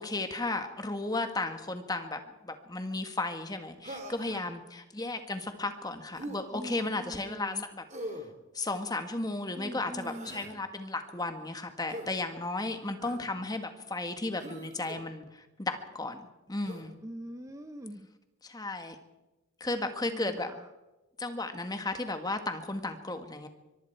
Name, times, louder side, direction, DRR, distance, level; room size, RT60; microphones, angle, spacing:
voice 1, 0.0-7.8 8.5-16.9 18.4-18.9 19.6-20.5 21.2-23.5, left 2 dB, 20° left, 7 dB, 1.6 m, -34 dB
Human voice, 3.8-4.4 6.1-6.4 7.9-8.3 9.9-10.5 11.9-12.1 13.0-13.3 14.4-15.0 16.6-16.9, right 1 dB, 35° right, 2.9 m, -42 dB
voice 2, 4.2-4.6 6.5-7.7 9.5-10.3 13.0-13.2 17.0-18.1 19.8-20.7, equal, 15° right, 7 dB, 0.8 m, -43 dB
24.0 x 23.5 x 4.6 m, 1.0 s
head